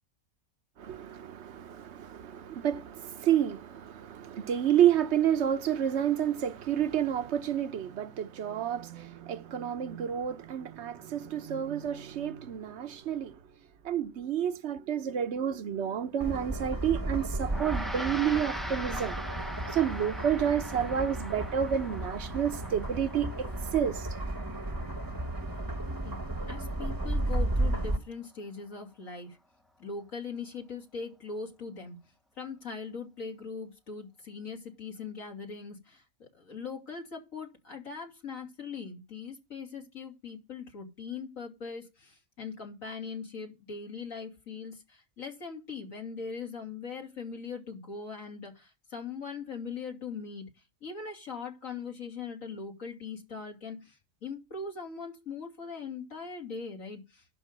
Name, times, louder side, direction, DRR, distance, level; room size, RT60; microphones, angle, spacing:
voice 1, 0.8-13.4 13.8-19.2 19.7-24.1, right 9 dB, 55° right, 1.1 m, -30 dB
sound 1, 8.2-14.2, right 9 dB, 80° right, 1.5 m, -50 dB
sound 2, 16.2-28.0, right 1 dB, 15° right, 1.1 m, -34 dB
Gong, 17.4-27.1, equal, ahead, 0.5 m, -42 dB
voice 2, 26.5-29.4 29.8-32.0 32.4-57.3, left 5 dB, 70° left, 3.3 m, -41 dB
11.5 x 5.2 x 7.7 m
omnidirectional pair, 1.5 m